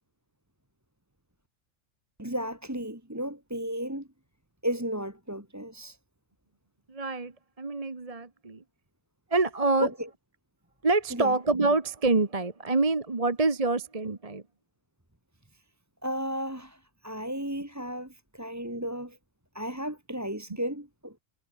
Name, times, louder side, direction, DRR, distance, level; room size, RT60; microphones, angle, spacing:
voice 1, 2.2-4.1 4.6-6.0 9.8-10.1 11.1-11.3 16.0-19.2 19.5-21.2, equal, 10° right, 2.8 m, -34 dB
voice 2, 6.9-8.6 9.3-9.9 10.8-14.4, right 3 dB, 30° right, 1.4 m, -26 dB
omnidirectional pair, 1.4 m